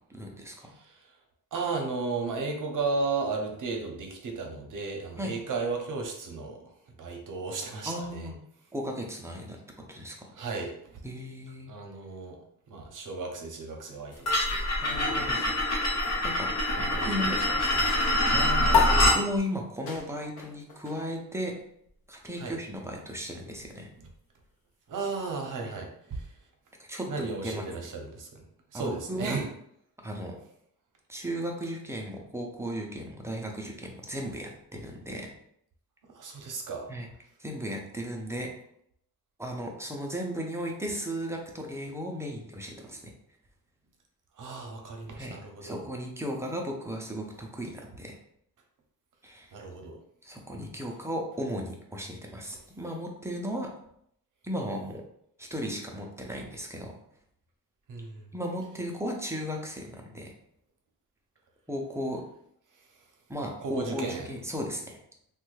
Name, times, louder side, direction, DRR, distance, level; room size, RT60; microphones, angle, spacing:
voice 1, 0.1-0.7 5.2-5.3 7.8-8.4 8.7-9.6 9.9-10.3 11.0-11.7 14.8-15.4 16.2-16.5 16.8-17.4 18.3-21.5 22.1-23.9 25.6-25.8 26.9-27.6 28.7-29.4 30.0-30.4 31.1-35.3 36.9-37.1 37.4-38.5 39.4-43.1 45.2-48.2 49.2-49.5 50.2-53.7 54.4-55.0 55.4-56.9 58.3-60.3 61.7-62.2 63.3-65.0, equal, 10° right, 0 dB, 0.4 m, -35 dB
voice 2, 0.7-1.1 1.5-6.6 7.0-8.3 10.3-11.0 11.7-12.4 12.7-15.6 16.7-18.5 22.4-22.6 24.9-26.3 27.1-28.4 28.7-29.5 36.1-36.9 44.4-45.8 49.5-50.0 57.9-58.3 62.8-62.9 63.6-64.3, right 4 dB, 55° right, 2 dB, 0.7 m, -35 dB
sound 1, 14.3-19.2, left 1 dB, 45° left, 0.9 m, -25 dB
sound 2, 18.7-25.5, left 6 dB, 65° left, 0.7 m, -33 dB
3.2 x 2.2 x 3.1 m, 0.71 s
wide cardioid pair, 145°, 38 cm